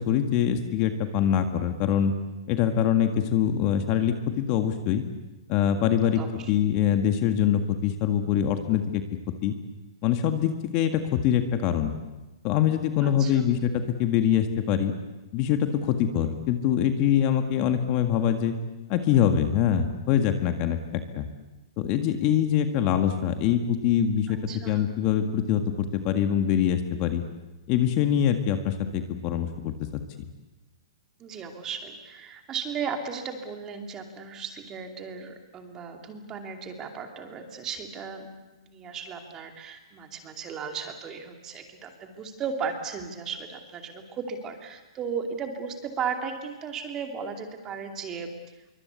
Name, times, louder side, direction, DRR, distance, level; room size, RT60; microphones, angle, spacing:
voice 1, 0.0-2.1 2.5-5.0 5.5-6.2 6.5-9.0 9.4-9.5 10.0-11.9 12.4-14.9 15.3-18.5 18.9-21.3 21.8-24.4 24.7-27.2 27.7-30.0, left 9 dB, 30° left, 7 dB, 1.8 m, -24 dB
voice 2, 6.1-6.5 13.0-13.5 24.3-24.8 31.2-48.3, right 6 dB, 20° right, 5 dB, 2.7 m, -36 dB
25.0 x 24.0 x 8.4 m, 1.1 s
hypercardioid pair, 160°, 3 cm